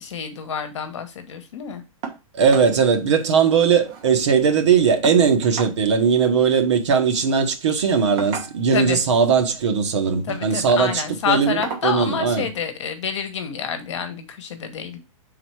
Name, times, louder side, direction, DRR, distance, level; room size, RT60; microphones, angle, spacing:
voice 1, 0.0-1.8 8.7-9.0 10.3-15.0, left 7 dB, 55° left, 1.2 m, -28 dB
sound 1, 2.0-2.2 2.5-2.7 3.1-3.2 3.5-4.2 5.0-5.8 7.0-7.2 8.2-8.8 9.9-10.2 10.7-10.8 11.6-11.9 13.2-13.3 13.8-13.9, right 5 dB, 20° right, 0.7 m, -34 dB
voice 2, 2.3-12.5, right 6 dB, 55° right, 1.0 m, -19 dB
5.5 x 3.9 x 4.5 m
hypercardioid pair, 180°, 18 cm